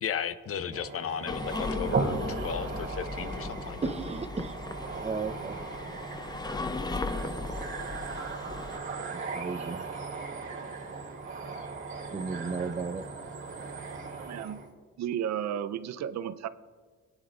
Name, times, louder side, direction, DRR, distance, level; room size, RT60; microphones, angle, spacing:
voice 1, 0.0-3.8, left 8 dB, 50° left, 12 dB, 0.7 m, -35 dB
sound 1, 0.7-14.7, right 4 dB, 40° right, 3.0 m, -37 dB
sound 2, 1.3-8.8, left 3 dB, 15° left, 0.6 m, -37 dB
voice 2, 3.8-4.7 5.0-5.6 9.1-9.8 12.1-13.0, right 4 dB, 20° right, 10 dB, 0.7 m, -34 dB
voice 3, 14.1-14.6 15.0-16.5, right 9 dB, 65° right, 13 dB, 0.6 m, -33 dB
19.0 x 9.8 x 2.5 m, 1.5 s
cardioid pair, 90°, 30 cm